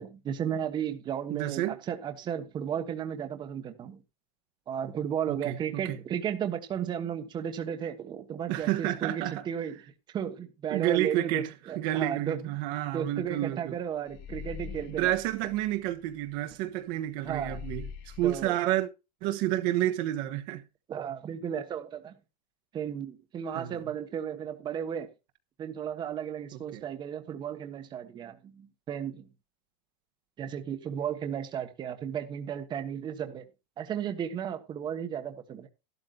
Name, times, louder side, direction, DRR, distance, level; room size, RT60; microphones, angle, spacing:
voice 1, 0.0-4.0 4.7-9.8 10.1-12.5 12.9-15.1 17.2-17.6 18.2-18.6 20.9-22.2 22.7-25.1 25.6-29.3 30.4-33.5 33.8-35.7, right 8 dB, 20° right, 1.2 m, -34 dB
voice 2, 1.3-1.8 5.3-6.0 8.5-9.5 10.7-13.8 14.9-18.9 19.2-20.6 23.5-23.8 26.7-26.8, right 14 dB, 45° right, 1.2 m, -30 dB
sound 1, 13.2-13.4 13.7-16.5 16.8-16.9 17.2-18.5, left 8 dB, 45° left, 1.0 m, -43 dB
12.5 x 12.0 x 2.4 m
supercardioid pair, 155°, 21 cm